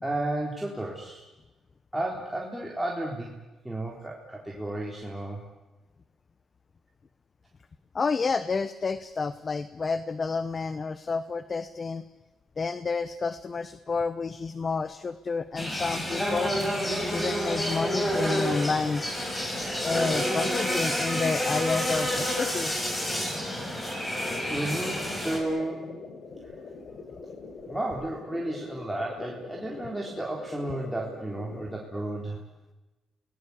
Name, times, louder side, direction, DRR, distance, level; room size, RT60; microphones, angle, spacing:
voice 1, 0.0-1.2 1.9-3.4 3.6-5.4 24.5-26.0 26.4-26.5 27.7-32.4, right 1 dB, 5° right, -2 dB, 3.9 m, -33 dB
voice 2, 7.9-12.0 12.6-16.5 17.1-19.0 19.4-22.8, left 4 dB, 35° left, 14 dB, 0.9 m, -30 dB
sound 1, 15.6-25.4, equal, 15° left, 6.7 m, -29 dB
sound 2, 24.3-31.8, left 4 dB, 60° left, 4.5 m, -43 dB
28.5 x 19.0 x 8.6 m, 1.1 s
cardioid pair, 90°, 0 cm